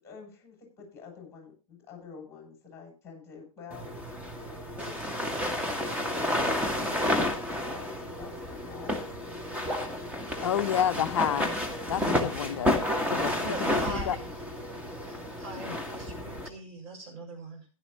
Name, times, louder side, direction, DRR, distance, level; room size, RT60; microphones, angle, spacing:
voice 1, 0.0-4.3 4.8-5.6 6.1-9.1, left 6 dB, 15° left, 7.6 m, -48 dB
sound 1, 3.7-16.5, left 1 dB, 5° right, 1.9 m, -31 dB
voice 2, 10.4-11.5 11.9-12.8 13.1-13.3 13.6-14.2 15.7-15.8, left 9 dB, 55° left, 0.5 m, -29 dB
voice 3, 13.4-14.4 15.0-17.7, right 2 dB, 35° right, 6.9 m, -42 dB
16.0 x 11.5 x 3.0 m
figure-of-eight pair, 110°, 18 cm